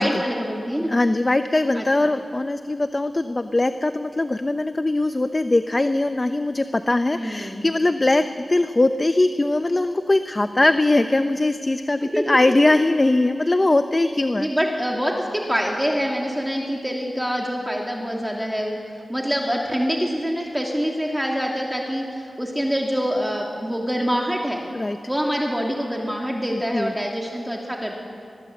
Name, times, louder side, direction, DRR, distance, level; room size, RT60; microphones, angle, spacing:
voice 1, 0.0-0.9 1.7-2.1 7.1-7.6 12.1-12.4 13.3-13.4 14.4-18.8 19.1-24.6 25.1-28.0, equal, 5° right, 0 dB, 2.7 m, -25 dB
voice 2, 0.9-14.5 24.7-25.0 26.7-26.9, left 2 dB, 30° left, 9 dB, 0.8 m, -21 dB
22.5 x 19.5 x 7.9 m, 2.4 s
cardioid pair, 60°, 0 cm